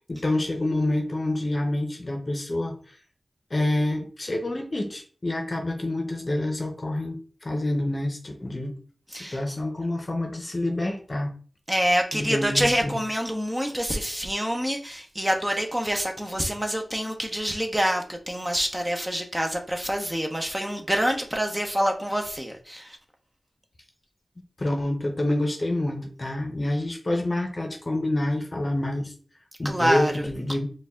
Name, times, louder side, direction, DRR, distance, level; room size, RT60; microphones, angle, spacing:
voice 1, 0.1-2.8 3.5-8.7 9.1-11.3 12.1-12.9 24.6-29.1 29.6-30.7, left 1 dB, 40° left, 0.8 m, -27 dB
voice 2, 11.7-23.0 29.6-30.2, equal, 15° right, 0.8 m, -26 dB
4.7 x 2.4 x 3.7 m
wide cardioid pair, 65°, 0 cm